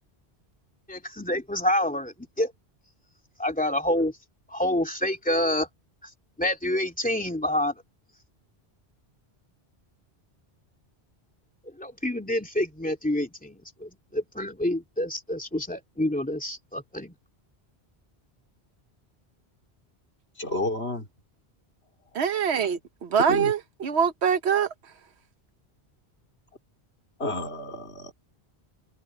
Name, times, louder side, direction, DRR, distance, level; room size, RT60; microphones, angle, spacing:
voice 1, 0.9-2.5 3.4-4.1 4.5-5.7 6.4-7.7 11.8-17.1, left 1 dB, 5° left, 2.7 m, -27 dB
voice 2, 20.4-21.1 23.2-23.5 27.2-28.1, left 2 dB, 75° left, 4.5 m, -30 dB
voice 3, 22.1-24.7, right 7 dB, 75° right, 1.2 m, -24 dB
omnidirectional pair, 1.1 m